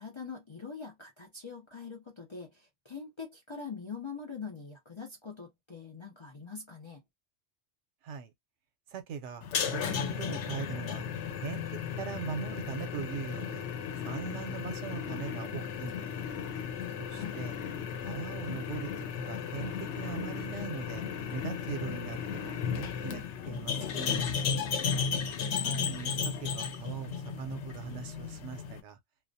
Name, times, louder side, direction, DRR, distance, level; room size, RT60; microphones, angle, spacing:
voice 1, 0.0-7.0 17.0-17.4 25.3-26.0, left 5 dB, 45° left, 0.3 m, -44 dB
voice 2, 8.9-11.1 11.4-13.7 14.0-16.1 17.0-17.6 18.0-21.1 21.3-24.5 25.6-29.0, right 6 dB, 75° right, 0.9 m, -41 dB
sound 1, 9.4-28.8, left 7 dB, 70° left, 0.8 m, -35 dB
2.3 x 2.0 x 2.6 m
omnidirectional pair, 1.2 m